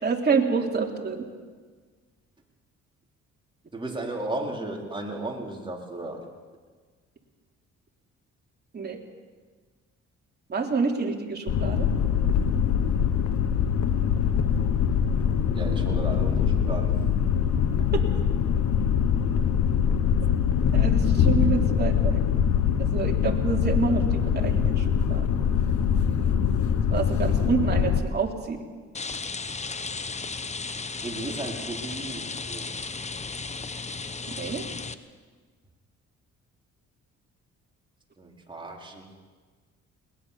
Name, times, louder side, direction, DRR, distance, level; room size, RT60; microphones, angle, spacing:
voice 1, 0.0-1.3 8.7-9.0 10.5-11.9 17.9-18.0 20.7-22.2 22.9-25.4 26.9-28.7 34.3-34.7, right 5 dB, 35° right, 1 dB, 3.3 m, -28 dB
voice 2, 3.7-6.3 15.4-17.0 17.7-17.8 30.9-32.8 38.2-39.1, right 2 dB, 15° right, -1 dB, 4.4 m, -35 dB
sound 1, 11.5-28.0, left 8 dB, 70° left, 1.5 m, -23 dB
Rain, 28.9-34.9, left 4 dB, 25° left, 1.0 m, -35 dB
21.5 x 20.0 x 7.0 m, 1.5 s
cardioid pair, 90°, 30 cm